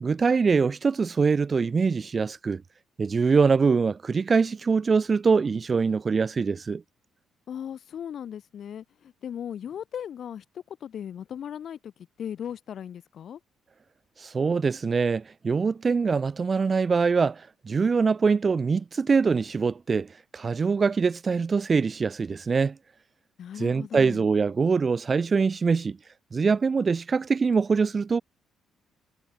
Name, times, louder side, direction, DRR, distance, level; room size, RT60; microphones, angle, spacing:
voice 1, 0.0-2.6 3.0-6.8 14.2-22.8 23.6-26.0 26.3-28.2, right 5 dB, 30° right, 0.6 m, -23 dB
voice 2, 7.5-11.9 12.2-13.4 23.4-24.2, left 9 dB, 50° left, 4.4 m, -37 dB
cardioid pair, 135°, 0 cm